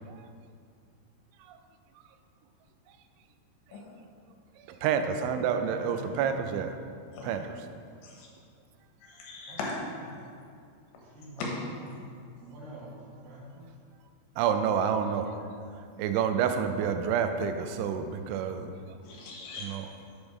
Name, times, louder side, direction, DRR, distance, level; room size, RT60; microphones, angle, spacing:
voice 1, 4.8-6.7 7.2-7.5 14.4-15.3 16.0-18.7 19.6-19.9, right 7 dB, 90° right, 7 dB, 3.0 m, -28 dB
voice 2, 5.5-6.5 9.5-9.6 11.0-11.5 11.8-12.0 12.4-13.7, right 1 dB, 70° right, -4 dB, 3.3 m, -46 dB
voice 3, 9.0-9.8 11.4-11.5 19.0-19.8, left 3 dB, 75° left, -2 dB, 3.4 m, -38 dB
7.9 x 5.2 x 6.2 m, 2.3 s
omnidirectional pair, 5.3 m